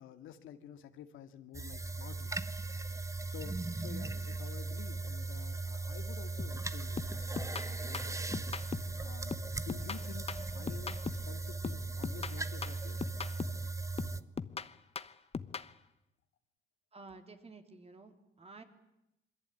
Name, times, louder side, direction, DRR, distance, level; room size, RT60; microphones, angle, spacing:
voice 1, 0.0-2.5 3.2-8.4 9.0-13.0, left 9 dB, 85° left, 7 dB, 2.2 m, -51 dB
sound 1, 1.5-14.2, right 3 dB, 15° right, 1.1 m, -38 dB
sound 2, 6.4-6.7 7.0-9.0 9.3-11.3 11.6-13.7 14.0-15.7, left 5 dB, 30° left, 1.1 m, -41 dB
voice 2, 16.9-18.6, right 3 dB, 30° right, 6 dB, 3.7 m, -52 dB
27.0 x 22.0 x 9.3 m, 0.88 s
cardioid pair, 90°, 20 cm